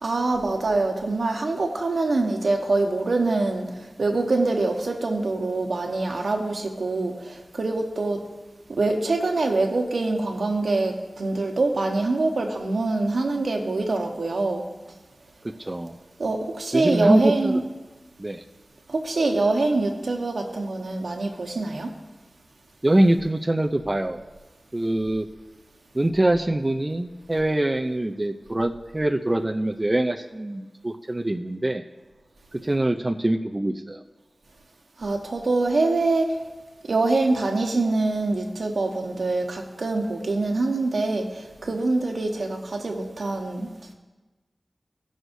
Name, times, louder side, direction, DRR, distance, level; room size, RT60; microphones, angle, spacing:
voice 1, 0.0-8.2 8.7-14.7 16.2-17.6 18.9-21.9 35.0-36.4 36.9-43.7, right 2 dB, 80° right, 3 dB, 1.2 m, -24 dB
voice 2, 15.6-16.0 16.7-17.6 18.2-18.4 22.8-24.2 24.7-25.3 25.9-31.8 32.5-34.0, right 1 dB, 30° right, 5 dB, 0.5 m, -23 dB
18.5 x 6.3 x 2.7 m, 1.2 s
cardioid pair, 45°, 0 cm